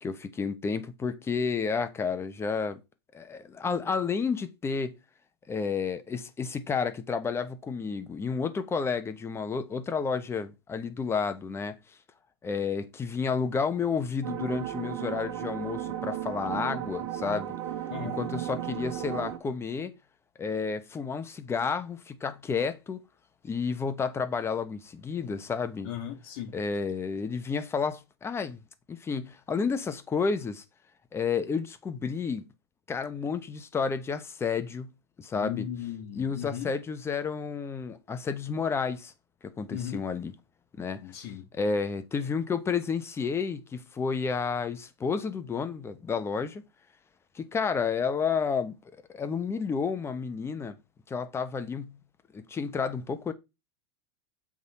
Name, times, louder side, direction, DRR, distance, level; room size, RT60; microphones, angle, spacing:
voice 1, 0.0-2.8 3.1-5.0 5.5-11.8 12.4-17.6 18.0-19.9 20.4-23.0 23.4-25.9 26.5-28.6 28.9-30.6 31.1-32.4 32.9-34.9 35.2-35.7 36.1-39.1 39.4-40.3 40.8-46.6 47.3-48.7 49.1-50.8 51.1-52.0 52.3-53.3, left 5 dB, 15° left, 0.9 m, -31 dB
sound 1, 14.2-19.4, right 11 dB, 70° right, 1.5 m, -35 dB
voice 2, 17.9-18.2 25.8-26.5 35.3-36.7 39.7-40.0 41.0-41.5, left 10 dB, 60° left, 1.3 m, -37 dB
8.0 x 3.7 x 4.2 m
supercardioid pair, 125°, 14 cm